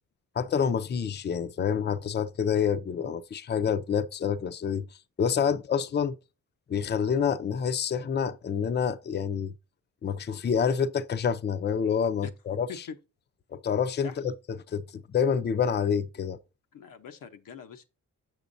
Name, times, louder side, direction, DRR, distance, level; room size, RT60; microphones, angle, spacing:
voice 1, 0.4-4.8 5.2-6.2 6.7-9.5 10.0-12.7 13.5-16.4, left 7 dB, 35° left, 0.5 m, -27 dB
voice 2, 16.7-17.9, left 6 dB, 90° left, 0.9 m, -42 dB
7.0 x 6.1 x 2.6 m
cardioid pair, 100°, 32 cm